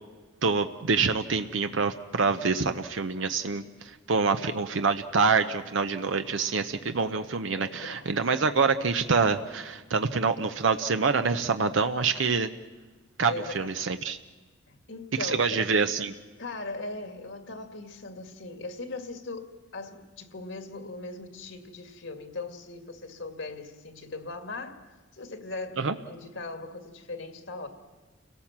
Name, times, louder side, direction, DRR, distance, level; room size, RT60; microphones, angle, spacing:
voice 1, 0.4-12.5 13.2-14.2 15.2-16.1 25.8-26.0, right 4 dB, 80° right, 8 dB, 0.8 m, -26 dB
voice 2, 7.6-8.1 13.3-13.8 14.7-15.7 16.4-27.7, left 3 dB, 70° left, 7 dB, 2.1 m, -39 dB
30.0 x 18.0 x 7.4 m, 1.3 s
head